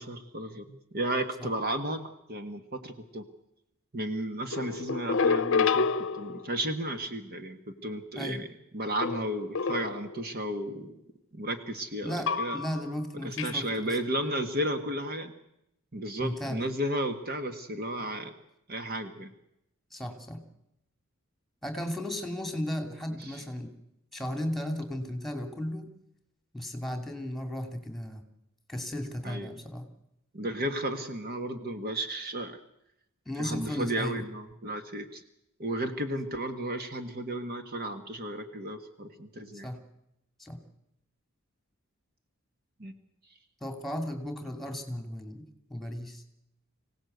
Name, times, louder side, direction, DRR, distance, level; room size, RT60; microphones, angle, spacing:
voice 1, 0.0-2.0 2.3-3.3 3.9-5.9 6.1-8.5 8.7-10.9 11.3-12.6 13.2-15.3 15.9-18.3 18.7-19.3 23.2-23.4 29.2-29.6 30.3-32.6 33.4-35.2 35.6-39.7 42.8-42.9, right 1 dB, 45° right, 7 dB, 1.6 m, -33 dB
sound 1, 4.5-6.7 9.0-10.3 12.3-12.9 13.4-13.6, left 5 dB, 60° left, 0.8 m, -29 dB
voice 2, 12.0-13.6 16.2-16.7 19.9-20.4 21.6-23.7 24.1-25.9 26.5-28.2 28.7-29.9 33.3-34.2 39.6-39.8 40.4-40.6 43.6-45.4 45.7-46.2, left 1 dB, ahead, 6 dB, 2.7 m, -35 dB
25.5 x 17.0 x 8.1 m, 0.83 s
head